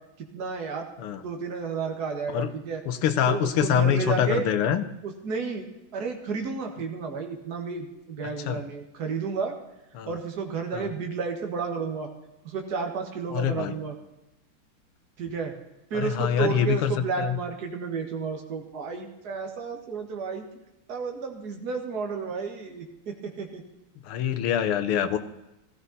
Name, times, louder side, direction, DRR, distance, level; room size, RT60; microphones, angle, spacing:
voice 1, 0.2-0.9 1.2-2.8 3.3-4.5 5.0-5.7 5.9-9.5 10.1-12.1 12.4-14.0 15.2-15.5 15.9-20.5 20.9-23.6, right 5 dB, 50° right, 3 dB, 2.1 m, -32 dB
voice 2, 2.9-4.8 8.5-8.6 10.0-10.1 10.7-10.9 13.3-13.8 15.9-16.9 17.2-17.4 24.0-25.2, left 9 dB, 85° left, 11 dB, 1.8 m, -25 dB
15.5 x 15.0 x 4.2 m, 0.94 s
omnidirectional pair, 2.3 m